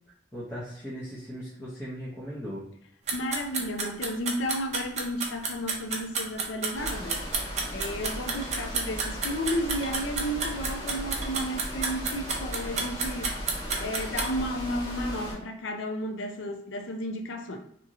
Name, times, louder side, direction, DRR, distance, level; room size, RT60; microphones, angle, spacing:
voice 1, 0.3-2.6, equal, 15° left, -9 dB, 0.6 m, -38 dB
voice 2, 3.1-7.2 7.7-13.4 13.8-17.6, equal, 80° left, 5 dB, 0.5 m, -33 dB
sound 1, 3.1-14.3, right 4 dB, 35° right, 0.5 m, -30 dB
sound 2, 6.7-15.3, equal, 45° left, 1.2 m, -37 dB
2.9 x 2.7 x 2.5 m, 0.71 s
head